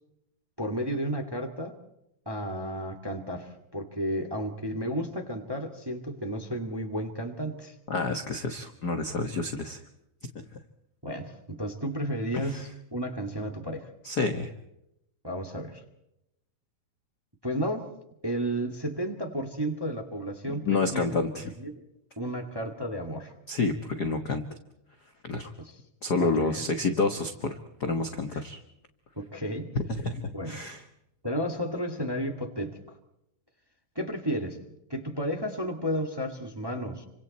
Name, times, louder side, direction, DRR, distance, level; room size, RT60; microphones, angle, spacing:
voice 1, 0.6-1.7 2.2-7.7 11.0-13.9 15.2-15.8 17.4-17.9 18.2-21.1 21.4-21.8 22.1-23.3 25.6-25.7 26.2-26.7 28.3-28.4 29.1-29.7 30.3-30.6 31.2-32.8 33.9-34.6 34.9-37.1, equal, 10° right, 5 dB, 1.7 m, -32 dB
voice 2, 7.9-9.8 12.4-12.6 14.0-14.5 20.7-21.4 23.5-24.4 25.2-25.5 26.0-28.6 29.7-30.8, left 3 dB, 45° left, 6 dB, 1.3 m, -29 dB
29.5 x 25.5 x 4.3 m, 0.83 s
omnidirectional pair, 3.6 m